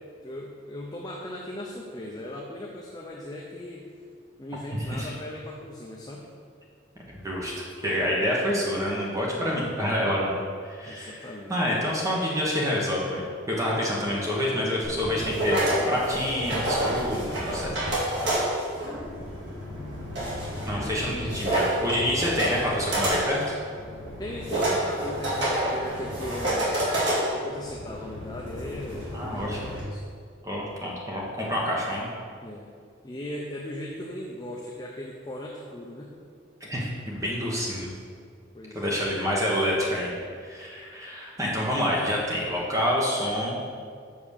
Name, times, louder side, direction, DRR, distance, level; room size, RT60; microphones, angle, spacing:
voice 1, 0.2-3.9 4.4-6.3 9.3-9.6 10.9-11.9 20.8-21.3 24.2-26.8 27.3-30.0 32.4-32.7 33.0-36.1 38.5-39.1, left 1 dB, 20° left, -2 dB, 0.6 m, -38 dB
voice 2, 7.8-17.7 20.7-23.6 29.1-29.6 30.4-32.1 36.6-37.9 38.7-43.6, equal, 15° right, -4 dB, 1.2 m, -27 dB
sound 1, 14.8-29.8, right 1 dB, 60° right, 2.2 m, -29 dB
5.8 x 5.5 x 6.5 m, 2.1 s
head